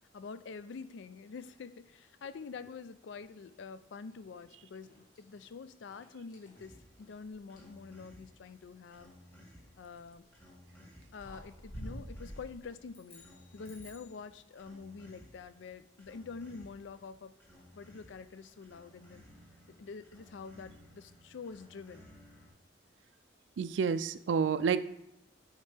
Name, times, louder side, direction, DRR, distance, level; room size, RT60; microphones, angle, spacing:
voice 1, 0.1-9.1 9.8-10.2 11.1-13.2 13.5-17.3 17.7-19.2 19.7-22.1, left 5 dB, 70° left, 13 dB, 0.4 m, -46 dB
sound 1, 4.3-4.5 4.8-5.5 5.9-7.8 10.0-10.3 10.9-11.0 11.2-12.7, equal, 45° left, 1.7 m, -48 dB
sound 2, 6.6-22.5, equal, 10° left, 1.6 m, -58 dB
sound 3, 12.9-14.2, left 4 dB, 30° left, 1.7 m, -58 dB
voice 2, 23.6-24.8, right 6 dB, 70° right, 14 dB, 0.3 m, -29 dB
9.8 x 4.4 x 3.3 m, 0.87 s
head